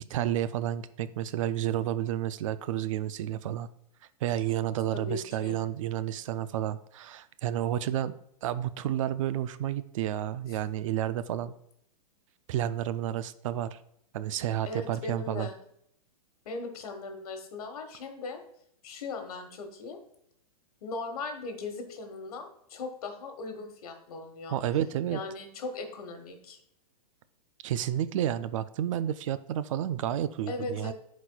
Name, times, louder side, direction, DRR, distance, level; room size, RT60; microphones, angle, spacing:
voice 1, 0.1-3.7 4.2-8.1 8.4-11.5 12.5-13.8 14.1-15.5 24.5-25.2 27.6-30.9, right 11 dB, 55° right, 14 dB, 0.4 m, -31 dB
voice 2, 4.9-5.6 14.7-15.6 16.4-18.4 18.8-20.0 20.8-24.6 25.1-26.6 30.5-30.9, left 3 dB, 70° left, 5 dB, 1.3 m, -38 dB
11.0 x 4.2 x 2.3 m, 0.71 s
hypercardioid pair, 140°, 19 cm